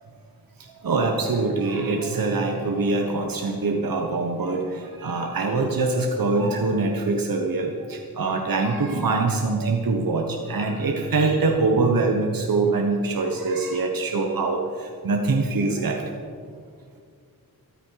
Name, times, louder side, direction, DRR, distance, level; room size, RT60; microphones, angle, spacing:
voice 1, 0.8-16.0, right 3 dB, 65° right, 2 dB, 1.3 m, -24 dB
14.0 x 13.0 x 4.8 m, 2.1 s
wide cardioid pair, 100°, 37 cm